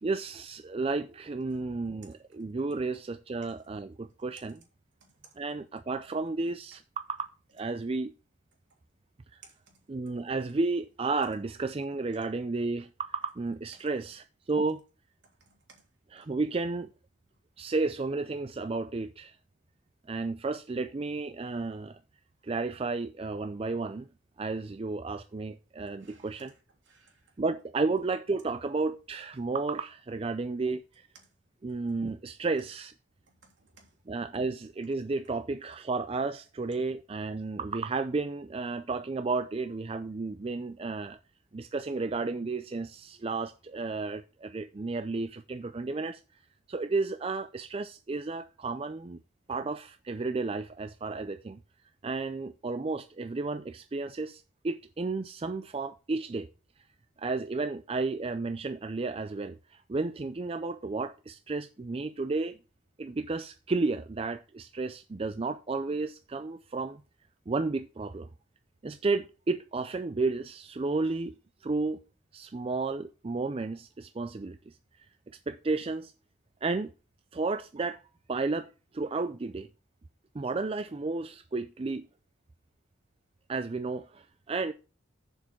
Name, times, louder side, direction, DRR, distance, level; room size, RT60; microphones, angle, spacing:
voice 1, 0.0-4.6 5.4-7.2 7.5-8.1 9.3-9.4 9.9-14.8 16.1-16.9 17.6-19.4 20.1-22.0 22.4-24.1 24.4-26.5 27.4-30.8 31.6-32.9 34.1-41.2 41.5-46.2 46.7-49.2 49.5-51.6 52.0-56.5 57.2-62.6 63.0-67.0 67.5-68.3 68.8-72.0 72.3-74.7 75.5-76.1 76.6-76.9 77.3-78.0 78.3-79.7 80.3-82.1 83.5-84.7, right 3 dB, 30° right, 0.4 m, -32 dB
voice 2, 5.0-5.3 9.4-9.8 15.2-15.8 26.0-26.5 26.9-27.2 31.1-31.3 31.7-31.8 33.3-33.9, right 5 dB, 65° right, 3.0 m, -59 dB
7.3 x 6.5 x 6.1 m
head